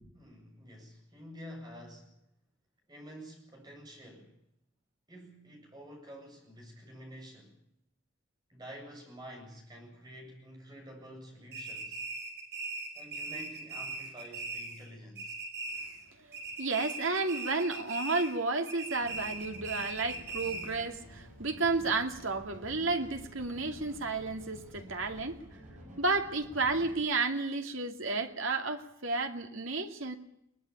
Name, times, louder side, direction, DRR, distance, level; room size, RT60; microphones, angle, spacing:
voice 1, 0.1-2.1 2.9-4.4 5.1-7.6 8.5-12.0 12.9-15.4, equal, 20° right, 1 dB, 7.8 m, -49 dB
sound 1, 11.5-14.9 15.1-16.1 16.3-18.4 18.7-20.8, right 3 dB, 50° right, 7.3 m, -39 dB
voice 2, 16.6-25.4 26.0-30.1, right 3 dB, 70° right, 5 dB, 2.6 m, -32 dB
sound 2, 19.0-27.0, equal, 35° right, 7.6 m, -51 dB
22.5 x 19.5 x 8.6 m, 0.78 s
head